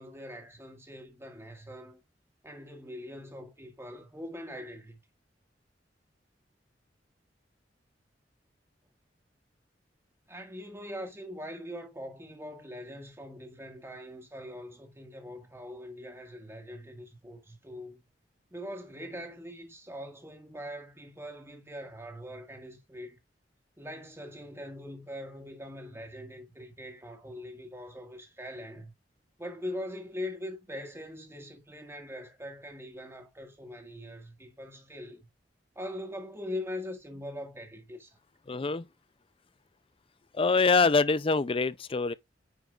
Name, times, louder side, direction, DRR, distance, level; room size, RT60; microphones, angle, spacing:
voice 1, 0.0-2.0 2.4-5.0 10.3-18.0 18.5-23.2 23.8-28.9 29.4-35.3 35.8-38.2, left 1 dB, 15° right, 1.8 m, -42 dB
voice 2, 38.5-38.9 40.4-42.1, left 4 dB, 30° left, 0.5 m, -24 dB
10.0 x 5.0 x 2.4 m
head